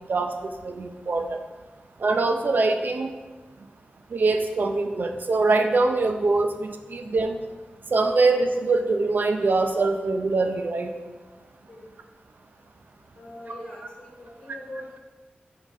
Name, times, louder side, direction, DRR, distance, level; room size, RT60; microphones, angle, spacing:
voice 1, 0.6-1.4 2.0-3.1 4.1-7.4 7.9-10.9, right 3 dB, 60° right, 6 dB, 0.6 m, -23 dB
voice 2, 13.1-15.0, left 1 dB, 45° left, -5 dB, 1.3 m, -41 dB
5.3 x 5.1 x 3.7 m, 1.3 s
wide cardioid pair, 80°, 3 cm